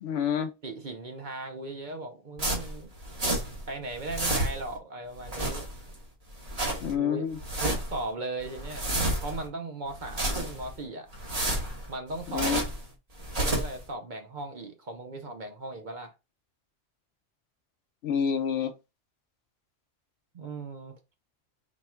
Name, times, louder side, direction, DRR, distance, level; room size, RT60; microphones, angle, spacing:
voice 1, 0.0-0.5 6.8-7.4 12.3-12.6 18.0-18.7, left 7 dB, 65° left, 0.8 m, -28 dB
voice 2, 0.6-2.9 3.7-5.7 6.9-7.3 7.5-8.9 9.2-11.1 11.9-12.6 13.3-16.1 20.3-20.9, right 2 dB, 50° right, 0.7 m, -37 dB
sound 1, 2.4-3.7 3.9-4.8 5.2-6.0 6.3-6.9 7.3-8.0 8.4-9.5 9.9-10.7 11.1-12.8 13.2-13.8, right 1 dB, 35° right, 1.2 m, -30 dB
4.2 x 2.3 x 4.3 m
omnidirectional pair, 1.2 m